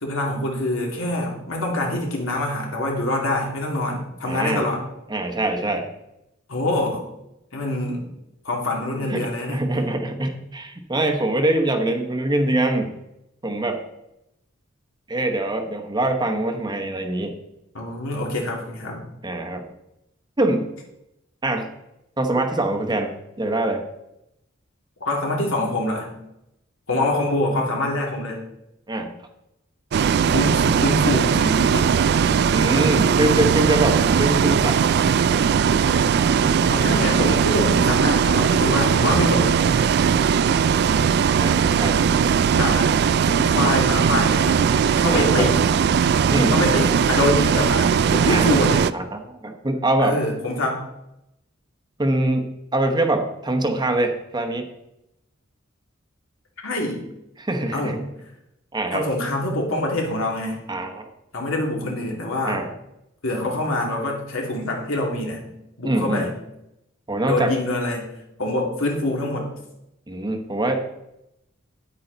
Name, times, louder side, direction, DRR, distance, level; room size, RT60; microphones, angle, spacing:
voice 1, 0.0-4.8 6.5-7.0 7.5-8.0 8.4-9.6 17.7-19.0 25.0-26.1 26.9-28.4 30.3-31.9 33.9-34.0 36.7-39.6 42.6-42.9 43.3-45.7 46.5-48.9 50.0-50.8 56.6-57.0 57.7-58.0 58.9-60.7 61.3-62.6 63.2-65.4 65.8-66.3 67.2-68.1 68.4-69.5, left 1 dB, 80° left, 0 dB, 2.6 m, -25 dB
voice 2, 4.3-4.7 5.1-5.9 9.1-12.9 13.4-13.8 15.1-17.3 19.2-19.6 20.4-20.7 21.4-21.7 22.2-23.8 28.9-29.1 32.5-34.8 41.4-42.0 45.1-45.5 46.3-46.6 48.3-48.5 48.9-50.2 52.0-54.7 57.4-58.0 58.7-59.1 60.7-61.0 62.5-62.7 65.8-66.3 67.1-67.5 70.1-70.8, right 1 dB, 20° right, 5 dB, 1.0 m, -24 dB
Bus, 29.9-48.9, right 7 dB, 55° right, 0.3 m, -19 dB
9.4 x 8.7 x 4.0 m, 0.85 s
head